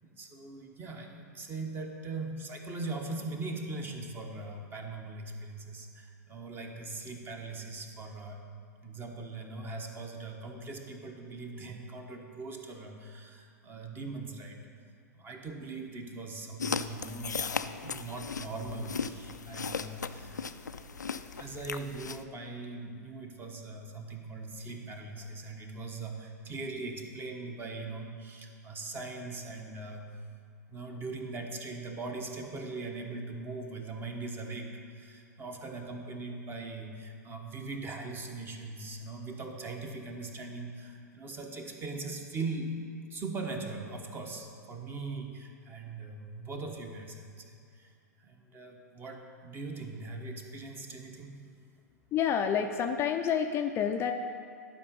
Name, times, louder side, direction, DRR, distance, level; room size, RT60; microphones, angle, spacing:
voice 1, 0.0-8.4 8.8-14.7 15.1-17.4 17.8-30.1 30.7-42.7 43.1-47.9 48.2-51.4, right 3 dB, 25° right, 3 dB, 1.1 m, -40 dB
sound 1, 16.6-22.2, left 5 dB, 90° left, 0.4 m, -37 dB
voice 2, 52.1-54.1, left 8 dB, 25° left, 5 dB, 0.4 m, -28 dB
11.0 x 5.1 x 5.4 m, 2.3 s
figure-of-eight pair, 105°, 9 cm